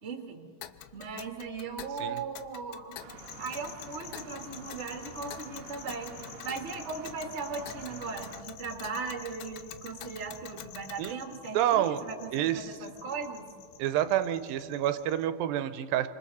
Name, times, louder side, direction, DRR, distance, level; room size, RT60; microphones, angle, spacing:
voice 1, 0.0-0.5 0.9-3.0 3.4-13.5, right 4 dB, 25° right, 3 dB, 1.6 m, -38 dB
Tick, 0.6-11.2, left 11 dB, 85° left, 2.6 m, -48 dB
sound 1, 3.0-8.4, right 7 dB, 65° right, 1.7 m, -49 dB
sound 2, 3.2-15.3, left 8 dB, 70° left, 2.0 m, -50 dB
voice 2, 11.5-12.0 12.3-12.6 13.8-16.1, right 12 dB, 85° right, 11 dB, 2.5 m, -28 dB
28.0 x 26.0 x 4.2 m, 2.1 s
omnidirectional pair, 4.1 m